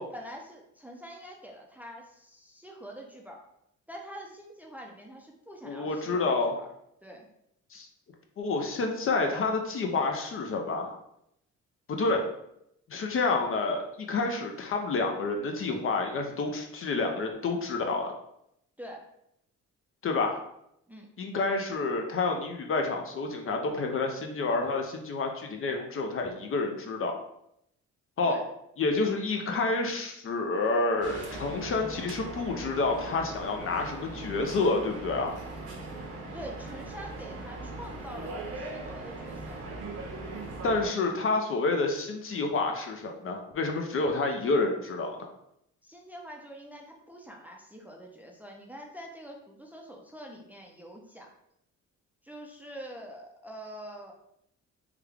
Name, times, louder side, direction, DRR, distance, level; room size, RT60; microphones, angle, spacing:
voice 1, 0.0-3.4 3.9-6.7 7.0-7.3 18.8-19.1 20.9-21.1 28.3-28.5 36.3-39.6 45.8-51.3 52.2-54.1, equal, 5° right, 0 dB, 0.5 m, -45 dB
voice 2, 5.6-6.6 7.7-7.9 8.4-11.0 11.9-12.2 12.9-18.1 20.0-20.4 21.2-27.1 28.2-28.3 28.8-35.3 40.6-45.2, left 3 dB, 45° left, 3 dB, 0.5 m, -29 dB
sound 1, 31.0-40.9, right 2 dB, 55° right, 0.8 m, -40 dB
3.3 x 2.2 x 3.4 m, 0.78 s
cardioid pair, 90°, 30 cm